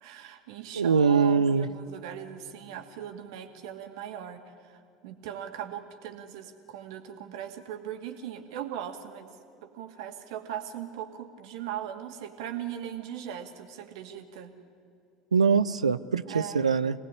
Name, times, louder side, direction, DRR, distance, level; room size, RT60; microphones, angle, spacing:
voice 1, 0.0-9.4 9.6-14.5 16.3-16.6, right 10 dB, 65° right, 5 dB, 2.4 m, -39 dB
voice 2, 0.7-1.7 15.3-16.9, right 5 dB, 90° right, 13 dB, 0.6 m, -23 dB
25.5 x 19.0 x 10.0 m, 2.6 s
hypercardioid pair, 75°, 3 cm